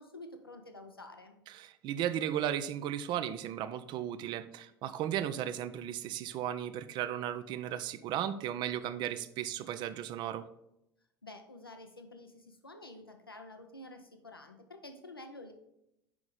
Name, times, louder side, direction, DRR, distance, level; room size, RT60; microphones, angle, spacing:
voice 1, 0.0-1.4 11.2-15.5, left 2 dB, 90° left, 6 dB, 0.6 m, -49 dB
voice 2, 1.5-10.5, right 10 dB, 40° right, 13 dB, 0.4 m, -35 dB
5.9 x 4.8 x 3.9 m, 0.83 s
figure-of-eight pair, 75°, 12 cm